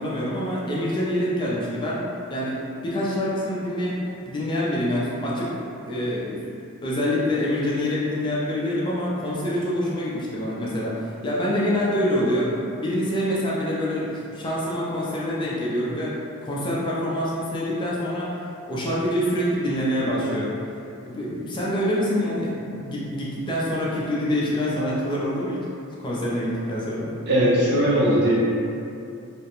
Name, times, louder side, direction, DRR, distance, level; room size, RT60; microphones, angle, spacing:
voice 1, 0.0-2.0 2.3-2.6 2.8-6.4 6.8-12.5 12.8-16.1 16.4-18.3 18.7-20.6 21.0-25.7 26.0-27.1, equal, 20° left, -6 dB, 0.3 m, -26 dB
voice 2, 27.3-28.3, equal, 50° right, -7 dB, 0.6 m, -19 dB
2.4 x 2.1 x 2.8 m, 2.7 s
head